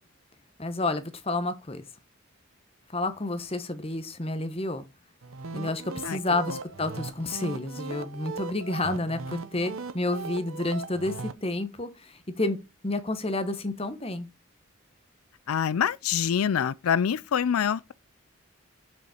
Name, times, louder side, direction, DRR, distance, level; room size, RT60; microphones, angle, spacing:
voice 1, 0.6-1.8 2.9-4.8 5.5-12.6 12.8-14.3, left 2 dB, 25° left, 1.2 m, -30 dB
sound 1, 5.2-11.3, right 4 dB, 75° right, 0.8 m, -38 dB
voice 2, 15.5-17.9, left 8 dB, 90° left, 0.4 m, -25 dB
7.0 x 6.7 x 5.0 m
head